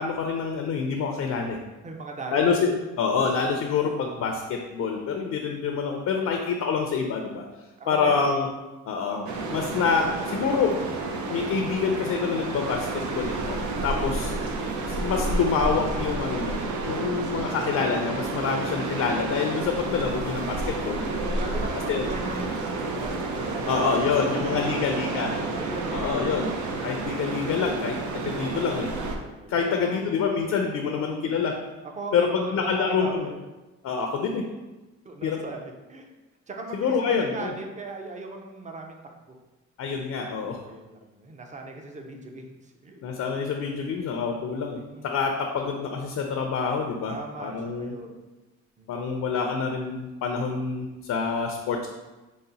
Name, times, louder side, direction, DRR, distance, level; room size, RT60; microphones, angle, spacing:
voice 1, 0.0-1.6 2.3-2.7 3.0-7.4 7.9-8.5 8.9-10.7 11.3-14.3 14.9-16.6 16.9-20.6 20.8-21.0 21.9-22.0 23.7-25.3 25.9-26.5 26.8-28.9 29.5-31.5 32.1-33.3 33.8-34.4 35.2-35.4 36.7-37.5 39.8-40.6 43.0-47.9 48.9-51.9, left 5 dB, 60° left, 3 dB, 0.5 m, -26 dB
voice 2, 1.8-2.5 7.8-8.2 21.2-26.6 29.4-30.0 30.8-31.2 32.0-33.4 35.0-36.1 36.5-39.4 40.4-43.0 44.9-45.2 47.1-48.2 48.8-48.9, right 2 dB, 25° right, 3 dB, 0.5 m, -38 dB
sound 1, 9.3-29.2, right 3 dB, 75° right, 0.6 m, -30 dB
4.0 x 2.1 x 3.9 m, 1.1 s
cardioid pair, 90°, 30 cm